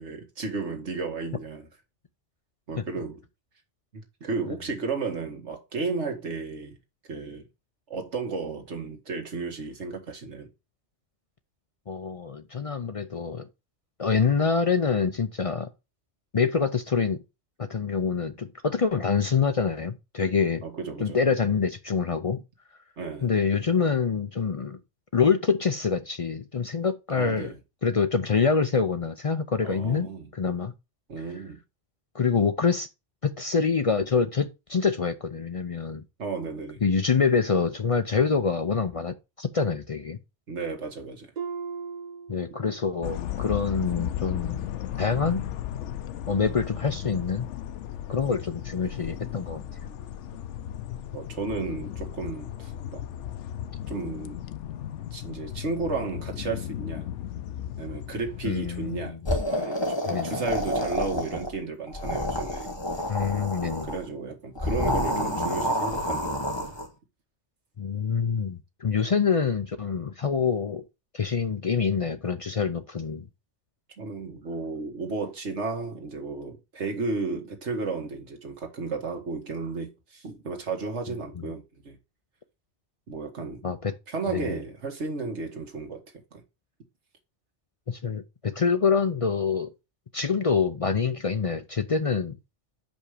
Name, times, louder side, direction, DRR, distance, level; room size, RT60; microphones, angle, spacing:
voice 1, 0.0-1.7 2.7-3.2 3.9-6.8 7.1-7.4 7.9-10.5 20.6-21.2 23.0-23.3 27.1-27.6 29.6-30.3 31.1-31.6 36.2-36.8 40.5-41.3 51.1-53.0 53.9-54.4 55.1-57.1 57.8-59.2 59.5-62.7 63.6-66.7 74.0-82.0 83.1-83.6 84.1-86.0 86.3-86.4, right 4 dB, 75° right, 1.9 m, -33 dB
voice 2, 11.9-13.5 14.0-15.7 16.3-17.2 17.6-20.6 21.0-22.4 23.2-24.8 25.1-27.5 27.8-30.7 32.1-32.9 33.2-36.0 36.8-40.2 42.3-44.7 45.0-45.5 46.3-47.5 48.1-49.6 58.4-59.2 60.1-60.4 63.1-63.9 67.8-70.8 71.1-73.2 83.6-83.9 84.3-84.6 87.9-89.7 90.1-92.4, left 5 dB, 45° left, 0.4 m, -26 dB
Harp, 41.4-43.1 43.5-43.9 44.4-44.6, right 6 dB, 45° right, 0.8 m, -38 dB
sound 1, 43.0-59.1, left 11 dB, 85° left, 0.9 m, -35 dB
sound 2, 59.2-61.6 61.9-64.0 64.6-66.9, left 1 dB, 25° left, 1.3 m, -29 dB
6.0 x 5.3 x 4.9 m
omnidirectional pair, 1.2 m